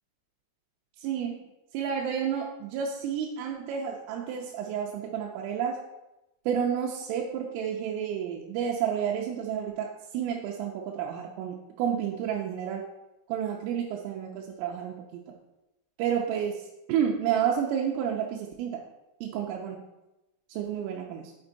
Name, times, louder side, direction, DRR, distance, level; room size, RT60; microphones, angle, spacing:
voice 1, 1.0-1.5 1.7-5.8 6.5-12.9 13.3-15.0 16.0-16.6 16.9-18.8 19.2-19.8 20.5-21.3, right 8 dB, 90° right, -1 dB, 3.2 m, -30 dB
8.0 x 4.4 x 3.9 m, 0.97 s
omnidirectional pair, 5.7 m